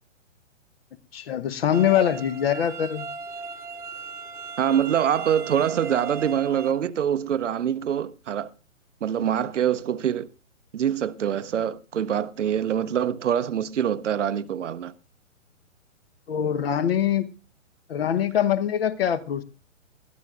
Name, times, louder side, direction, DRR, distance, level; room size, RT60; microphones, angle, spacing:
voice 1, 1.1-3.1 16.3-17.3 17.9-19.4, left 9 dB, 50° left, 1.1 m, -23 dB
sound 1, 1.7-6.7, right 4 dB, 5° right, 1.1 m, -37 dB
voice 2, 4.6-8.5 9.0-10.3 10.7-14.9, right 9 dB, 65° right, 0.8 m, -25 dB
20.5 x 13.0 x 2.5 m
figure-of-eight pair, 125°, 39 cm